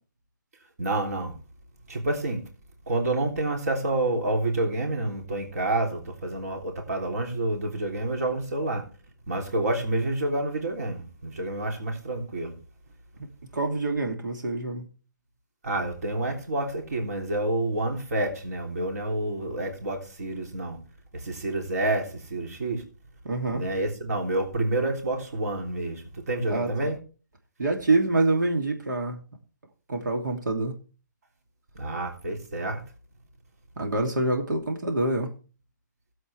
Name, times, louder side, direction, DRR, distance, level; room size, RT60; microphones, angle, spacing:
voice 1, 0.8-1.3 1.9-2.4 2.9-8.8 9.3-12.5 15.6-20.8 21.1-22.8 23.5-27.0 31.7-32.8, right 2 dB, 55° right, 3.3 m, -28 dB
voice 2, 13.5-14.8 23.2-23.6 26.5-26.7 27.6-29.2 29.9-30.7 33.8-35.3, right 2 dB, 85° right, 2.8 m, -26 dB
18.0 x 7.8 x 3.4 m
hypercardioid pair, 175°, 10 cm